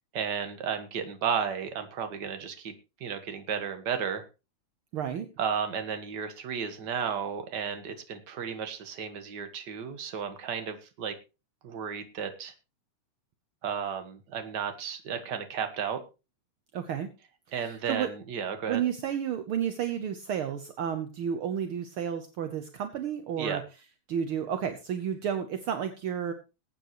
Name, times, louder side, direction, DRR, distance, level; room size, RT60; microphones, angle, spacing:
voice 1, 0.1-2.7 3.0-4.2 5.4-11.1 11.6-12.5 13.6-16.0 17.5-18.8 23.4-23.6, right 7 dB, 45° right, 8 dB, 1.5 m, -33 dB
voice 2, 4.9-5.3 16.7-17.1 17.6-18.1 18.7-23.6 24.1-26.3, right 8 dB, 70° right, 8 dB, 1.3 m, -31 dB
20.0 x 8.9 x 3.1 m, 0.29 s
omnidirectional pair, 3.6 m